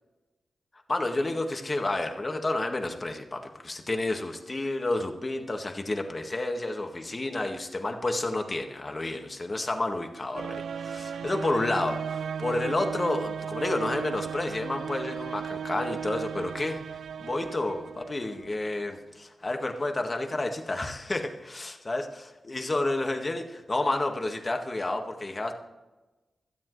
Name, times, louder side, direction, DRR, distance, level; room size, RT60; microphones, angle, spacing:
voice 1, 0.9-16.8 17.2-22.1 22.4-25.5, left 2 dB, 35° left, 4 dB, 1.8 m, -30 dB
sound 1, 10.3-18.7, right 7 dB, 90° right, 0.3 m, -36 dB
17.0 x 13.0 x 3.3 m, 1.1 s
cardioid pair, 75°, 0 cm